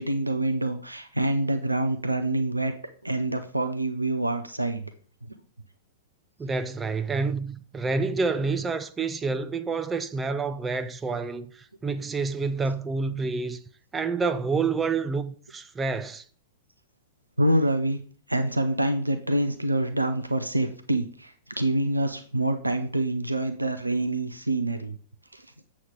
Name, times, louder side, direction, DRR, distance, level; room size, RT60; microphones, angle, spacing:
voice 1, 0.0-2.7 3.0-4.9 17.4-18.0 18.3-25.0 25.3-25.5, right 1 dB, 85° right, 0.7 m, -26 dB
voice 2, 6.4-13.6 13.9-16.2, right 4 dB, 15° right, 0.5 m, -28 dB
7.8 x 6.3 x 3.7 m
figure-of-eight pair, 100°, 0 cm